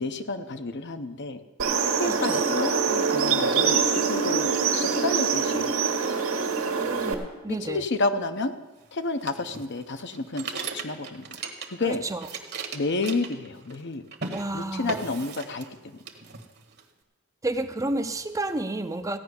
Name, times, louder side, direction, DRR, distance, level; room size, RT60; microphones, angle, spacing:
voice 1, 0.0-1.4 2.0-5.7 7.6-8.5 8.9-11.4 11.7-12.0 12.7-14.1 14.5-16.0, left 3 dB, 60° left, 8 dB, 0.9 m, -30 dB
sound 1, 1.6-7.1, right 5 dB, 90° right, 1.7 m, -24 dB
voice 2, 2.0-2.4 6.8-7.8 11.8-12.3 14.3-15.0 17.4-19.2, right 2 dB, 15° right, 8 dB, 0.6 m, -31 dB
sound 2, 9.3-11.9 12.1-13.8 14.1-14.4 14.9-15.8 16.1-16.8, right 5 dB, 55° right, 1.3 m, -37 dB
15.5 x 5.7 x 9.7 m, 1.2 s
head